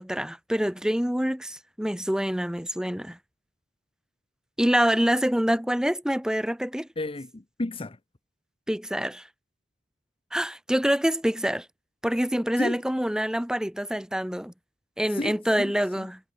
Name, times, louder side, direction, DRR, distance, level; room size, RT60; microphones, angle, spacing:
voice 1, 0.0-3.2 4.6-6.9 8.7-9.3 10.3-11.7 12.0-14.5 15.0-16.2, equal, 5° right, 0.9 m, -26 dB
voice 2, 7.0-8.0 12.6-12.8 15.1-16.1, left 2 dB, 30° left, 0.8 m, -33 dB
head